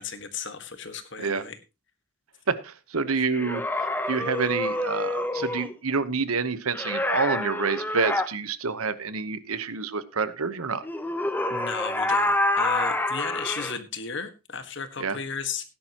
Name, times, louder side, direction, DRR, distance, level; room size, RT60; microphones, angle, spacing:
voice 1, 0.0-1.6 11.5-15.7, left 6 dB, 55° left, 9 dB, 1.6 m, -34 dB
voice 2, 2.5-3.6 4.1-10.8 15.0-15.2, right 4 dB, 85° right, 13 dB, 1.1 m, -28 dB
sound 1, 3.3-5.7 6.7-8.3 10.8-13.8, left 1 dB, 10° left, 0.9 m, -27 dB
17.0 x 10.5 x 3.0 m, 0.27 s
head